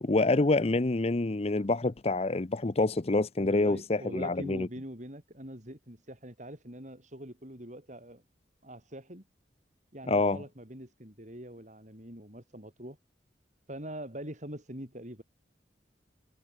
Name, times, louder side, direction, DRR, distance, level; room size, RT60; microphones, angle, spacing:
voice 1, 0.0-4.7 10.1-10.4, left 2 dB, 35° left, 0.7 m, -27 dB
voice 2, 3.4-8.2 8.6-9.2 9.9-13.0 13.7-15.2, right 1 dB, 45° right, 7.9 m, -43 dB
head